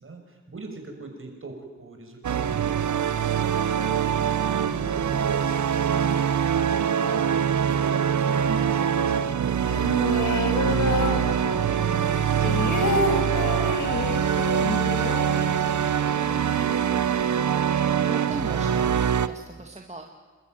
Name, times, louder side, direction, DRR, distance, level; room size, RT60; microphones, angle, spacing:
voice 1, 0.0-11.7, right 2 dB, 45° right, 4 dB, 6.1 m, -43 dB
sound 1, 2.2-19.3, right 8 dB, 75° right, 1.0 m, -24 dB
sound 2, 9.7-11.8 12.1-16.1 16.4-16.5 16.7-17.2, left 3 dB, 75° left, 2.9 m, -29 dB
sound 3, 10.5-17.0, left 2 dB, 50° left, 4.6 m, -41 dB
voice 2, 18.1-20.0, right 2 dB, 20° right, 3 dB, 2.1 m, -38 dB
28.5 x 13.0 x 9.2 m, 1.5 s
cardioid pair, 65°, 30 cm